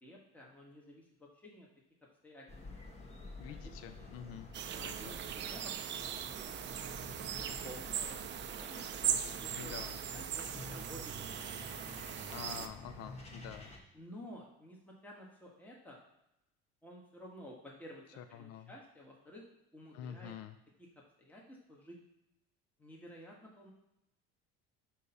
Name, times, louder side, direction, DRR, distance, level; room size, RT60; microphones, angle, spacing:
voice 1, 0.0-1.7 2.2-2.5 3.5-3.8 4.7-6.5 6.8-8.8 9.2-9.7 10.1-11.4 12.0-12.4 13.9-16.0 16.8-18.0 18.3-19.4 19.7-20.3 21.2-22.0 22.8-23.7, equal, 5° left, -3 dB, 1.3 m, -53 dB
sound 1, 2.5-13.8, left 2 dB, 20° left, 1.3 m, -49 dB
voice 2, 3.4-4.5 4.8-5.1 9.6-9.9 12.3-13.7 18.2-18.7 19.9-20.6, left 9 dB, 60° left, 9 dB, 0.5 m, -47 dB
sound 2, 4.5-12.7, right 9 dB, 40° right, 0.4 m, -39 dB
6.4 x 2.9 x 5.4 m, 0.87 s
cardioid pair, 105°, 29 cm